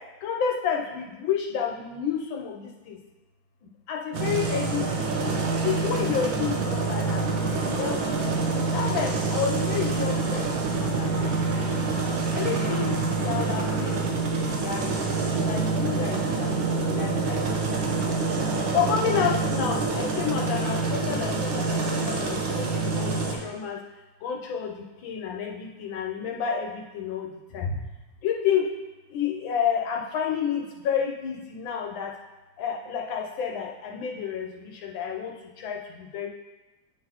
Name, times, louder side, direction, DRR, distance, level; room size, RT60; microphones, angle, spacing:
voice 1, 0.2-3.0 3.9-4.9 5.2-7.2 7.6-8.3 8.7-11.9 12.3-14.1 14.4-18.2 18.7-23.8 24.2-27.8 28.2-28.7 29.1-32.1 32.6-36.3, left 7 dB, 85° left, 0 dB, 1.6 m, -30 dB
sound 1, 4.1-23.4, right 3 dB, 85° right, 1.7 m, -26 dB
9.3 x 4.0 x 2.9 m, 1.1 s
omnidirectional pair, 2.1 m